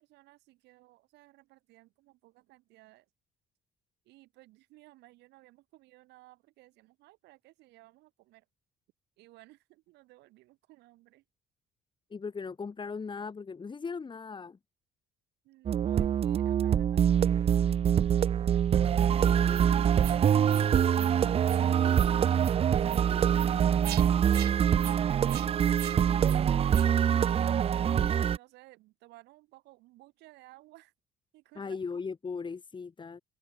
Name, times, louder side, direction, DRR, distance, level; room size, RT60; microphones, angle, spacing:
voice 1, 0.0-3.1 4.0-8.4 9.2-11.2 15.4-20.2 24.6-27.3 28.0-30.9 31.3-31.8, right 19 dB, 85° right, 6.5 m, -57 dB
voice 2, 12.1-14.6 31.5-33.2, left 5 dB, 30° left, 4.8 m, -38 dB
sound 1, 15.7-28.4, right 9 dB, 35° right, 0.5 m, -25 dB
sound 2, 19.5-19.7 20.0-20.2 20.5-20.7 20.9-21.1 21.4-21.6 21.9-22.1 22.4-22.5 22.9-23.0 23.3-23.5 23.8-24.0 24.3-24.5 24.8-25.0 25.3-25.5 25.7-26.0 26.2-26.4 26.7-26.9, right 14 dB, 70° right, 2.2 m, -42 dB
cardioid pair, 110°, 17 cm